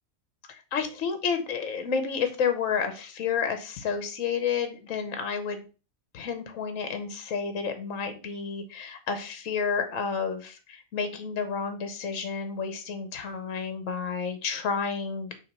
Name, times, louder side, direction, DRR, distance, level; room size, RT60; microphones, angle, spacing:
voice 1, 0.7-5.6 6.1-15.4, left 6 dB, 70° left, 8 dB, 1.3 m, -30 dB
6.3 x 3.0 x 5.5 m, 0.34 s
omnidirectional pair, 1.4 m